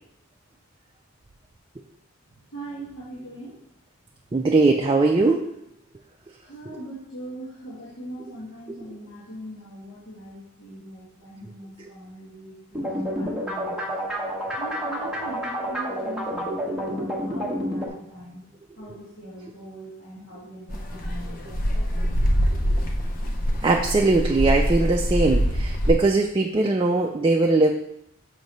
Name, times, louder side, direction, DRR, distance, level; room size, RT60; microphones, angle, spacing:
voice 1, 2.5-3.6 6.4-13.9 14.5-18.4 18.8-22.2, right 1 dB, 75° left, -8 dB, 1.8 m, -41 dB
voice 2, 4.3-5.6 6.7-6.8 8.7-8.9 11.8-11.9 22.5-22.9 23.6-27.7, right 3 dB, 25° right, 1 dB, 0.3 m, -21 dB
sound 1, 12.7-17.9, equal, 5° right, 0.8 m, -29 dB
sound 2, 20.7-25.9, equal, 40° left, 0.6 m, -24 dB
6.4 x 3.1 x 5.2 m, 0.79 s
head